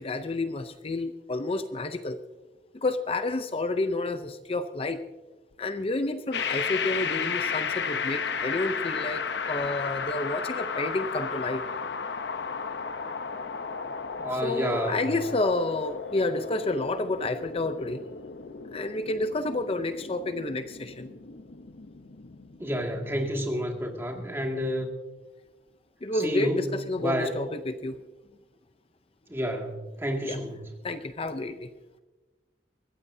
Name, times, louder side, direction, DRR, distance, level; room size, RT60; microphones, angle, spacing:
voice 1, 0.0-2.2 2.7-5.0 5.6-11.6 14.4-18.0 18.7-21.1 26.0-28.0 30.2-30.4 30.8-31.7, left 2 dB, 35° left, 9 dB, 0.6 m, -30 dB
sound 1, 6.3-24.2, left 5 dB, 75° left, 0.8 m, -34 dB
voice 2, 14.2-15.1 22.6-24.9 26.1-27.3 29.3-30.6, equal, 15° right, 1 dB, 2.1 m, -30 dB
23.0 x 14.5 x 2.7 m, 1.2 s
head